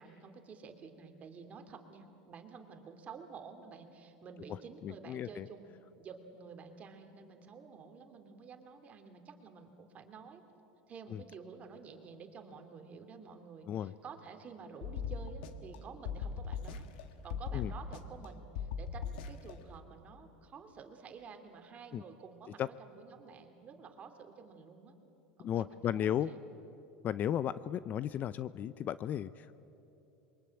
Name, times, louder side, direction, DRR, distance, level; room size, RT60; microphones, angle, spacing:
voice 1, 0.0-10.4 10.9-16.9 17.2-24.9 25.4-26.4, right 5 dB, 30° right, 5 dB, 2.8 m, -51 dB
voice 2, 4.8-5.5 11.1-11.2 13.7-13.9 17.5-17.7 21.9-22.0 22.6-22.7 25.4-26.3 27.0-29.5, left 10 dB, 35° left, 16 dB, 0.5 m, -34 dB
sound 1, 14.8-15.8 16.1-17.0 17.3-18.3 18.6-19.5, left 6 dB, 75° left, 1.7 m, -39 dB
27.5 x 23.0 x 8.8 m, 3.0 s
supercardioid pair, 130°, 5 cm